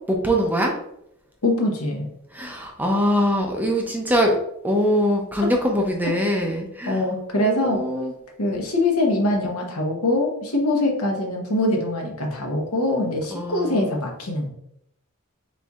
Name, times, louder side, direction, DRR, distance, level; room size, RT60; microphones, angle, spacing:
voice 1, 0.1-0.7 2.3-4.3 4.6-7.0 7.3-8.1 13.3-13.9, equal, 10° right, 1 dB, 0.5 m, -22 dB
voice 2, 1.4-2.1 6.9-7.8 8.4-14.5, left 1 dB, 75° left, 1 dB, 1.0 m, -23 dB
4.3 x 4.1 x 2.4 m, 0.76 s
head